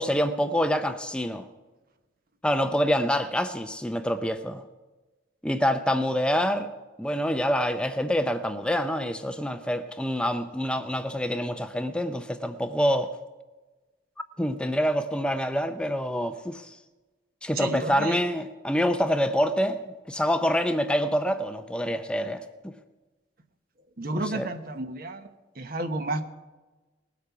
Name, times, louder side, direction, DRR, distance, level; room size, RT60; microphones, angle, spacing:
voice 1, 0.0-1.5 2.4-4.6 5.4-6.7 7.0-13.1 14.4-16.8 17.4-19.8 20.1-22.7 24.3-24.5, equal, 5° left, 0.5 m, -26 dB
voice 2, 17.5-18.2 24.0-25.3 25.6-26.3, right 2 dB, 55° right, 1.0 m, -31 dB
20.0 x 8.3 x 5.8 m
head